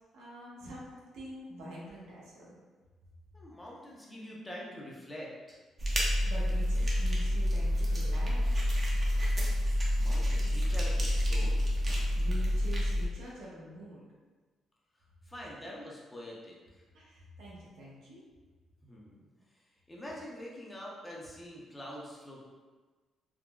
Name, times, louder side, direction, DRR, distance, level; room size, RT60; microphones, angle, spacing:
voice 1, 0.1-2.6 6.3-8.5 12.2-14.0 16.9-18.2, right 1 dB, 85° right, -5 dB, 0.8 m, -46 dB
voice 2, 3.3-5.6 10.0-11.7 15.3-16.8 18.8-19.3 19.9-22.5, equal, 15° left, -4 dB, 0.7 m, -45 dB
sound 1, 5.8-13.1, equal, 35° right, 0.7 m, -28 dB
3.7 x 2.0 x 2.3 m, 1.3 s
cardioid pair, 90°, 0 cm